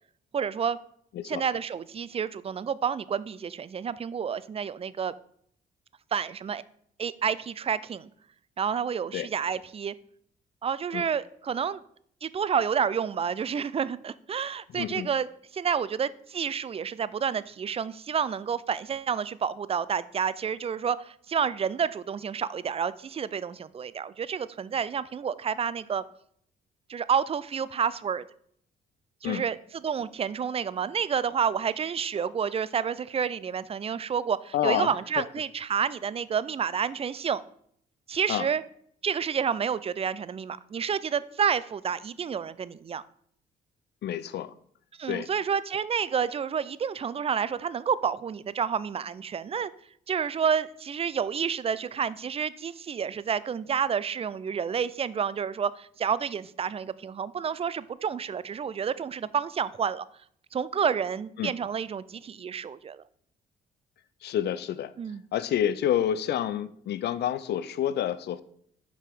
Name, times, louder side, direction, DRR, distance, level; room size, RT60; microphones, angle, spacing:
voice 1, 0.3-0.8 1.2-5.1 6.1-6.6 7.0-8.1 8.6-9.9 10.6-11.8 12.2-15.3 15.5-26.0 26.9-28.2 29.2-29.6 29.8-37.4 38.1-38.6 39.0-43.0 45.0-49.7 50.1-60.1 60.5-63.0 65.0-65.2, right 7 dB, 30° right, 17 dB, 0.3 m, -29 dB
voice 2, 14.7-15.1 29.2-29.4 34.5-34.9 38.3-38.5 44.0-44.5 45.1-45.3 61.4-61.5 64.2-64.9 65.3-68.4, left 10 dB, 55° left, 15 dB, 0.5 m, -28 dB
5.6 x 4.8 x 3.5 m, 0.65 s
hypercardioid pair, 50°, 21 cm